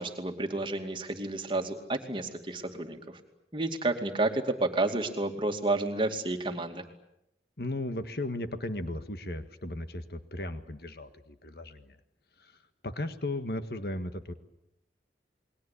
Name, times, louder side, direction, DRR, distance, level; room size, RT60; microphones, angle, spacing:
voice 1, 0.0-3.0 3.5-6.8, right 2 dB, 30° right, 4 dB, 2.5 m, -30 dB
voice 2, 7.6-12.0 12.4-12.5 12.8-14.3, left 1 dB, 60° left, 9 dB, 1.7 m, -36 dB
29.0 x 21.5 x 8.5 m, 0.82 s
head